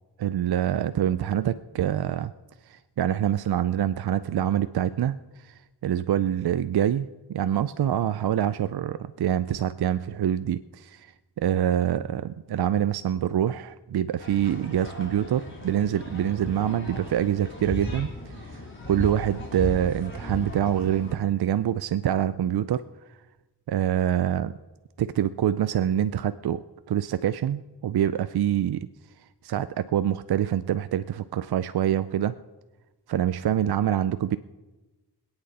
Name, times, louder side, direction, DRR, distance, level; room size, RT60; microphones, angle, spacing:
voice 1, 0.2-2.3 2.7-18.3 18.9-22.8 23.1-23.2 23.7-24.5 25.0-28.9 29.4-32.3 33.1-34.4, right 10 dB, 65° right, 13 dB, 0.5 m, -25 dB
sound 1, 14.2-21.1, left 1 dB, 30° left, 3.6 m, -36 dB
26.5 x 8.9 x 4.2 m, 1.2 s
cardioid pair, 55°, 41 cm